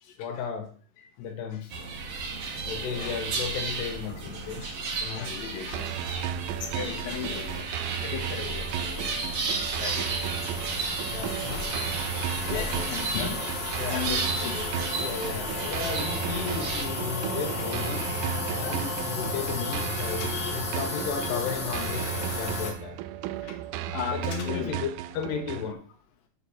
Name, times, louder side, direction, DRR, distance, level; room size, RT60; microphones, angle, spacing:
voice 1, 0.2-0.7 1.2-1.7 2.7-4.7 5.0-5.3 5.8-6.0 11.1-11.7 13.7-14.0 15.0-23.1 24.1-24.9 25.1-25.8, left 7 dB, 85° left, 4 dB, 3.5 m, -34 dB
sound 1, 1.7-16.8, right 3 dB, 55° right, 1.7 m, -33 dB
voice 2, 5.1-6.3 6.6-7.6 8.0-10.1 10.6-10.7 11.4-11.5 12.1-13.4 13.9-14.7 19.6-20.6 21.2-21.4 23.9-24.8, left 8 dB, 65° left, 0 dB, 3.1 m, -37 dB
sound 2, 5.7-25.7, right 11 dB, 80° right, 2.4 m, -35 dB
sound 3, 7.6-22.7, left 2 dB, 40° left, 1.8 m, -34 dB
7.9 x 4.7 x 7.3 m, 0.42 s
omnidirectional pair, 4.6 m